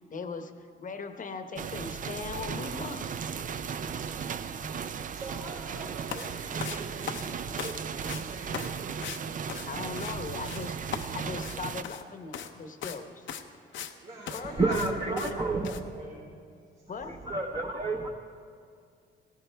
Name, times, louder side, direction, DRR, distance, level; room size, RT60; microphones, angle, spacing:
voice 1, 0.1-3.0 9.7-10.8 11.1-13.3 14.3-15.8 16.9-17.1, left 5 dB, 40° left, 7 dB, 1.0 m, -39 dB
sound 1, 1.6-11.8, right 7 dB, 40° right, 0.5 m, -36 dB
voice 2, 3.9-9.1 13.7-16.3 16.8-16.9, right 2 dB, 80° right, -11 dB, 3.5 m, -45 dB
sound 2, 6.1-6.3 6.6-8.2 8.5-8.7 9.0-9.2 9.5-10.2 10.4-10.7 10.9-12.0 12.3-12.5 12.8-13.0 13.3-13.9 14.3-14.4 14.7-14.9 15.2-15.3 15.6-15.8, left 8 dB, 70° left, 0.8 m, -38 dB
voice 3, 14.5-15.7 17.1-18.1, right 3 dB, 20° right, 0 dB, 1.0 m, -29 dB
16.5 x 14.0 x 3.4 m, 2.2 s
cardioid pair, 90°, 20 cm